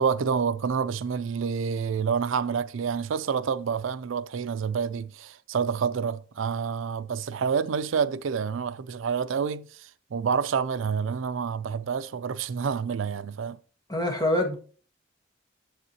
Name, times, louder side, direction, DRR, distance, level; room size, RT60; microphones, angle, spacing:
voice 1, 0.0-13.6, right 6 dB, 85° right, 0.4 m, -28 dB
voice 2, 13.9-14.5, left 1 dB, 20° left, 1.5 m, -25 dB
8.1 x 7.3 x 2.8 m
head